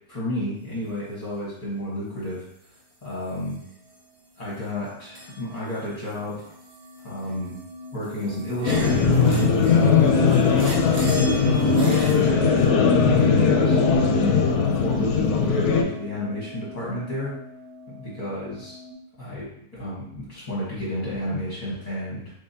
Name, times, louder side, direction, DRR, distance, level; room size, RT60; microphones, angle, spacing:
voice 1, 0.1-2.4 3.0-3.6 4.4-6.5 7.0-7.5 7.9-9.2 9.6-10.7 11.2-13.8 14.4-17.3 17.9-18.7 19.2-22.3, left 1 dB, 25° left, -9 dB, 1.0 m, -31 dB
sound 1, 3.3-4.1 4.4-18.9, right 1 dB, 85° right, 0.3 m, -39 dB
sound 2, 8.6-15.8, left 5 dB, 75° left, 1.0 m, -19 dB
3.6 x 3.3 x 2.7 m, 0.71 s
omnidirectional pair, 1.8 m